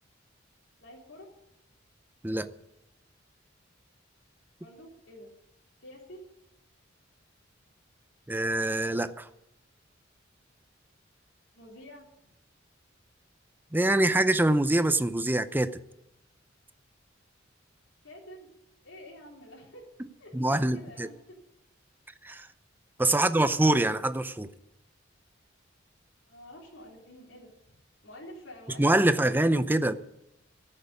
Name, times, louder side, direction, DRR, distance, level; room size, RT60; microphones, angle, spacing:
voice 1, 0.8-1.3 4.6-5.3 5.8-6.2 11.5-12.1 18.0-18.5 18.8-19.9 20.2-21.4 23.0-23.4 26.3-27.8 28.0-29.4, equal, 75° left, 3.7 m, -48 dB
voice 2, 8.3-9.3 13.7-15.8 20.3-21.1 22.2-22.5 23.0-24.5 28.8-29.9, right 1 dB, 10° right, 0.6 m, -24 dB
14.5 x 6.7 x 9.6 m
head